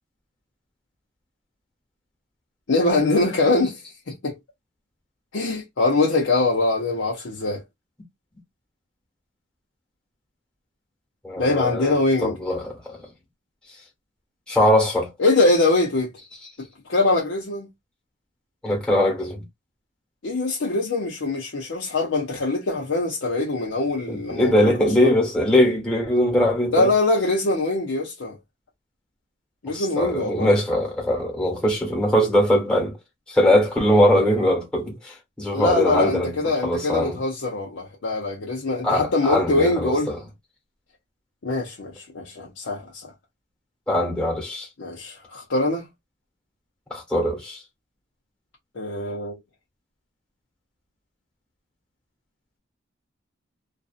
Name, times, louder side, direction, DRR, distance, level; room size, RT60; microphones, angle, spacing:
voice 1, 2.7-3.8 4.1-4.4 5.3-7.6 11.4-12.3 15.2-16.1 16.9-17.7 20.2-25.1 26.7-28.4 29.6-30.5 35.5-40.1 41.4-43.1 44.8-45.9 48.8-49.4, left 2 dB, 85° left, 0.7 m, -23 dB
voice 2, 11.2-13.0 14.5-15.1 18.6-19.4 24.1-26.9 29.7-33.0 33.3-37.2 38.8-40.2 43.9-44.7 46.9-47.6, left 1 dB, 5° left, 1.0 m, -21 dB
2.5 x 2.3 x 2.4 m
head